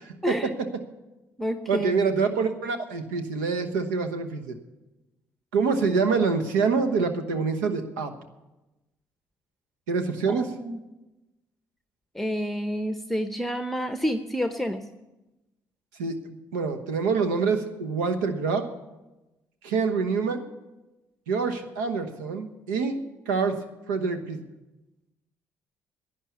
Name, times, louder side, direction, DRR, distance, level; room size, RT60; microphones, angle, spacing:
voice 1, 0.2-0.5 1.4-1.9 10.3-10.8 12.1-14.9, equal, 5° left, 8 dB, 0.8 m, -29 dB
voice 2, 1.7-4.6 5.5-8.1 9.9-10.5 16.0-18.7 19.6-20.4 21.3-23.0 23.3-23.6 23.9-24.4, right 5 dB, 90° right, 8 dB, 1.1 m, -26 dB
11.5 x 9.3 x 8.4 m, 1.0 s
hypercardioid pair, 55°, 9 cm